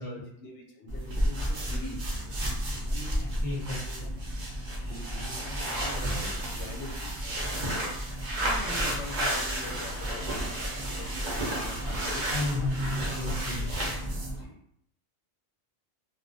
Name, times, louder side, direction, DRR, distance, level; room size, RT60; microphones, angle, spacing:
voice 1, 0.0-2.5 2.9-3.2 3.8-4.3 4.8-8.0 8.3-11.1 11.4-13.0 13.4-13.6 13.9-14.0 14.4-14.6, left 1 dB, 65° left, 0 dB, 0.8 m, -44 dB
sound 1, 0.9-14.4, right 1 dB, 55° right, 0.5 m, -31 dB
voice 2, 3.4-4.1 12.3-13.7, left 2 dB, 20° right, -8 dB, 0.8 m, -33 dB
2.3 x 2.1 x 2.6 m, 0.70 s
omnidirectional pair, 1.4 m